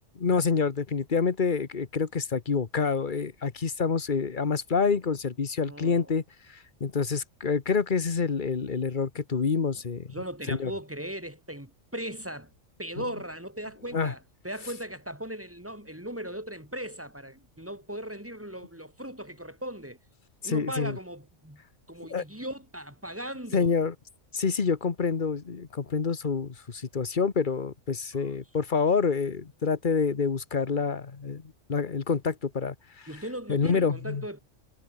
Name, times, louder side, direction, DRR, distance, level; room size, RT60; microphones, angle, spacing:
voice 1, 0.2-6.2 6.5-10.1 10.5-10.7 13.0-13.1 13.9-14.1 20.4-21.0 22.1-22.2 23.5-23.9 24.3-33.1 33.5-34.2, left 5 dB, 40° left, 1.4 m, -27 dB
voice 2, 5.6-6.1 10.1-12.5 12.8-20.0 20.4-21.6 21.9-23.7 28.1-28.3 33.1-34.4, right 1 dB, 10° right, 4.4 m, -38 dB
omnidirectional pair, 1.3 m